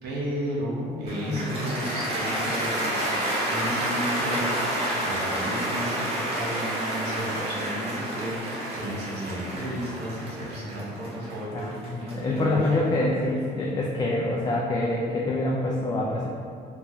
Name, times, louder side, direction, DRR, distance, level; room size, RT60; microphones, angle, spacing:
voice 1, 0.0-11.7 12.2-12.8, equal, 75° right, -6 dB, 1.0 m, -33 dB
voice 2, 0.9-1.4 2.0-2.3 11.5-16.3, left 2 dB, 25° left, -3 dB, 0.3 m, -26 dB
Cheering / Applause, 1.1-13.3, right 1 dB, 35° right, 1.0 m, -30 dB
3.7 x 2.3 x 3.1 m, 2.4 s
cardioid pair, 110°, 17 cm